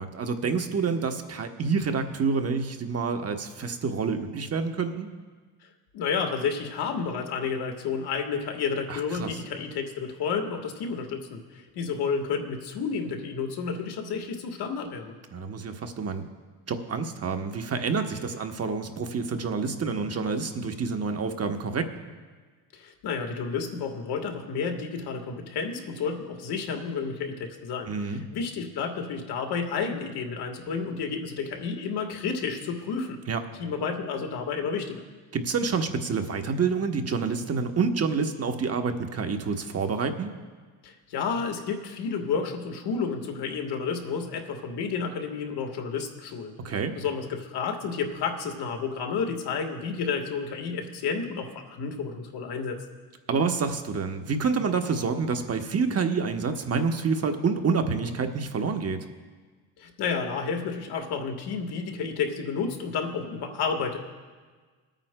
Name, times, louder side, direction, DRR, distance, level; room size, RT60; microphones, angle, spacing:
voice 1, 0.0-5.1 8.9-9.3 15.3-16.2 16.7-21.9 27.9-28.2 33.3-33.4 35.3-40.3 46.6-46.9 53.3-59.1, right 5 dB, 35° right, 6 dB, 1.0 m, -28 dB
voice 2, 5.9-15.1 22.7-33.2 33.6-35.0 40.8-46.6 46.9-52.8 59.8-64.0, left 5 dB, 65° left, 4 dB, 1.6 m, -31 dB
25.0 x 9.0 x 2.2 m, 1.4 s
supercardioid pair, 90°, 41 cm